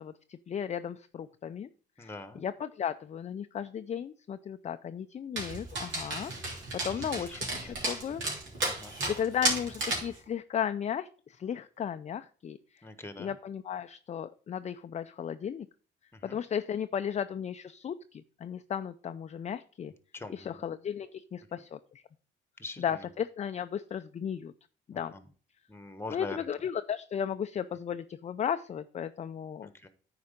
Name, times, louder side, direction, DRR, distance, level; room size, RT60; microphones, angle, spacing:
voice 1, 0.0-1.7 2.0-6.3 6.7-8.2 9.1-12.8 13.2-15.7 16.2-19.9 20.3-21.8 22.8-24.5 24.9-25.1 26.1-29.7, left 8 dB, 35° left, 10 dB, 0.4 m, -35 dB
voice 2, 2.0-2.4 6.9-7.8 8.7-8.9 12.8-13.3 16.1-16.4 20.1-20.6 22.6-23.1 24.9-25.3 25.7-26.5 29.6-29.9, left 2 dB, 10° left, 10 dB, 1.2 m, -44 dB
Dog, 5.4-10.2, right 2 dB, 70° right, 3.3 m, -33 dB
9.5 x 4.8 x 5.1 m, 0.41 s
cardioid pair, 90°, 20 cm